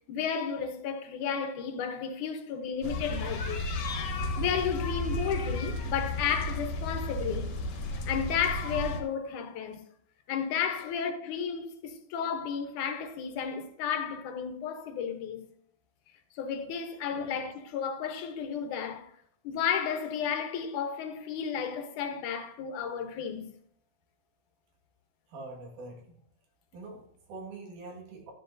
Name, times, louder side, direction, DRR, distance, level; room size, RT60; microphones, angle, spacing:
voice 1, 0.1-3.6 4.2-7.6 7.9-9.8 10.3-15.5 16.4-19.1 19.4-23.5, left 7 dB, 80° left, 2.5 m, -33 dB
sound 1, 2.8-9.0, left 1 dB, 60° left, 2.4 m, -33 dB
voice 2, 25.3-26.2 26.7-28.3, right 3 dB, 85° right, 3.3 m, -44 dB
12.5 x 10.5 x 2.6 m
omnidirectional pair, 3.6 m